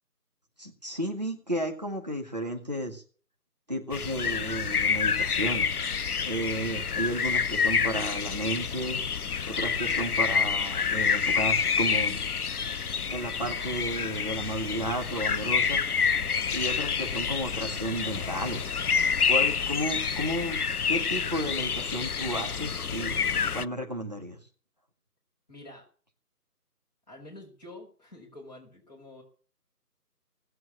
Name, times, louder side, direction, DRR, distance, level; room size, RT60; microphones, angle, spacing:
voice 1, 0.6-3.0 3.7-5.7 6.2-9.0 9.5-12.2 13.1-15.8 16.5-18.7 19.3-20.6 20.9-23.1 23.5-24.4, right 1 dB, 25° right, 1 dB, 1.7 m, -33 dB
sound 1, 3.9-23.7, left 6 dB, 70° left, 0.6 m, -28 dB
voice 2, 25.5-25.8 27.1-29.2, left 2 dB, 25° left, -2 dB, 4.6 m, -47 dB
18.0 x 7.8 x 8.4 m, 0.42 s
figure-of-eight pair, 165°, 47 cm